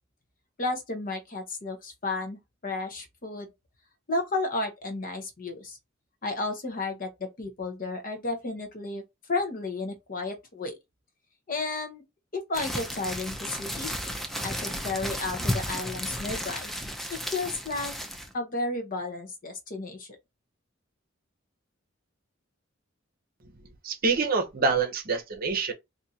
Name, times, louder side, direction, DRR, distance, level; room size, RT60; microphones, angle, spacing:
voice 1, 0.6-3.5 4.1-5.8 6.2-9.0 9.3-10.7 11.5-12.0 12.3-13.9 14.4-16.7 17.3-17.9 18.3-20.1, left 3 dB, 45° left, 0.8 m, -32 dB
sound 1, 12.5-18.3, equal, ahead, 0.5 m, -33 dB
voice 2, 23.8-25.7, right 4 dB, 50° right, 0.7 m, -26 dB
2.6 x 2.5 x 4.2 m
head